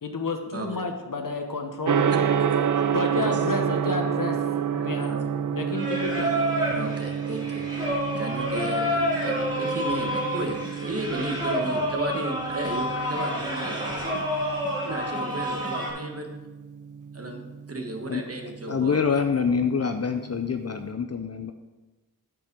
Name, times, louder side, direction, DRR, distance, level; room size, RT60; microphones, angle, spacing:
voice 1, 0.0-2.1 2.9-4.4 4.7-5.3 5.5-6.4, left 3 dB, 60° left, 4 dB, 1.1 m, -31 dB
voice 2, 0.5-0.9 2.1-2.2 2.5-2.9 3.1-3.3 4.7-5.2 6.7-7.6 8.2-14.0 14.8-16.3 17.1-17.4 17.7-19.0, right 2 dB, 40° right, 3 dB, 1.4 m, -34 dB
Gong, 1.8-20.8, right 8 dB, 55° right, 0.5 m, -30 dB
Singing, 5.7-15.9, equal, 10° right, 2.9 m, -29 dB
Drum kit / Snare drum / Bass drum, 7.9-15.9, left 1 dB, 20° left, 1.8 m, -45 dB
voice 3, 18.7-21.5, left 6 dB, 45° left, 7 dB, 0.5 m, -25 dB
8.7 x 5.3 x 6.0 m, 1.2 s
wide cardioid pair, 70°, 37 cm